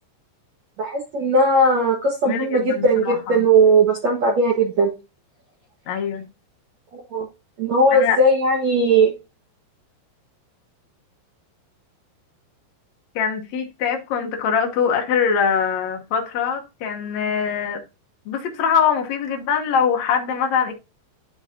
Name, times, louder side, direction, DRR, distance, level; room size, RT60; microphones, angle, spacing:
voice 1, 0.8-4.9 6.9-7.3 7.6-9.1, right 2 dB, 60° right, 1.8 m, -18 dB
voice 2, 2.2-3.5 5.9-6.3 7.9-8.2 13.1-17.8 18.2-20.7, left 7 dB, 85° left, 1.5 m, -23 dB
11.0 x 5.0 x 2.7 m
omnidirectional pair, 5.1 m